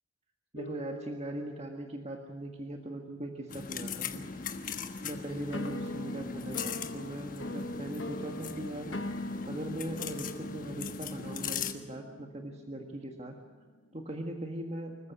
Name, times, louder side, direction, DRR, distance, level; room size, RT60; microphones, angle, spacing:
voice 1, 0.5-4.3 4.5-4.6 5.0-9.0 9.5-13.4 13.9-15.0, right 1 dB, 30° right, 3 dB, 1.6 m, -40 dB
sound 1, 0.6-3.9 5.5-14.1, left 1 dB, 65° left, 1.4 m, -42 dB
sound 2, 3.5-11.7, left 6 dB, 40° left, 1.4 m, -39 dB
25.5 x 15.0 x 8.3 m, 1.5 s
head